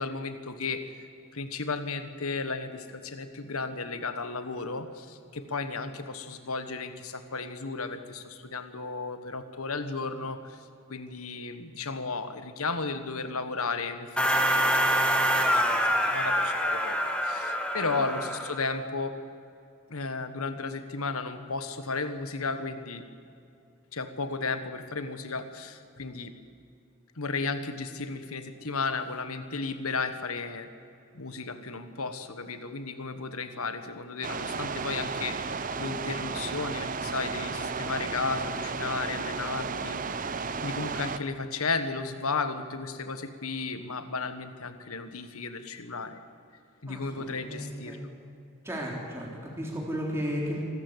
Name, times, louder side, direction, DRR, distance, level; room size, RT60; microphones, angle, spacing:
voice 1, 0.0-19.2 19.9-23.0 23.9-26.3 27.1-30.7 31.1-46.2 46.8-48.0, left 4 dB, 80° left, 10 dB, 1.5 m, -34 dB
sound 1, 14.2-18.7, equal, 5° left, 1.5 m, -26 dB
sound 2, 34.2-41.2, right 4 dB, 35° right, 0.7 m, -33 dB
voice 2, 46.9-48.0 48.6-50.6, equal, 10° right, -3 dB, 3.4 m, -34 dB
25.5 x 14.0 x 8.2 m, 2.5 s
head